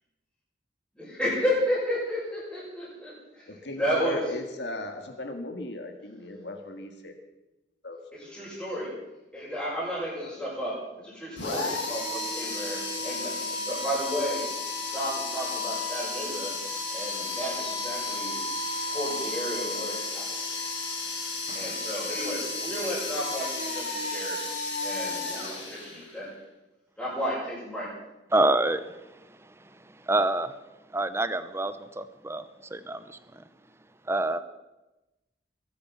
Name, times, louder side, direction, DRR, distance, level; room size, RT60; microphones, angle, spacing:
voice 1, 1.0-3.1 3.8-4.2 8.1-8.9 9.3-14.5 14.9-16.6 16.9-18.3 18.9-20.4 21.5-24.4 24.8-26.3 27.0-27.9, equal, 5° left, -9 dB, 7.2 m, -32 dB
voice 2, 3.6-7.1 7.8-8.0 8.6-8.7, left 1 dB, 70° left, 5 dB, 1.9 m, -36 dB
sound 1, 11.4-26.2, left 3 dB, 85° left, 6.1 m, -33 dB
voice 3, 28.3-28.8 30.1-30.5 30.9-32.4 32.7-33.2 34.1-34.4, right 2 dB, 15° right, 12 dB, 0.8 m, -26 dB
21.5 x 10.5 x 5.8 m, 1.0 s
head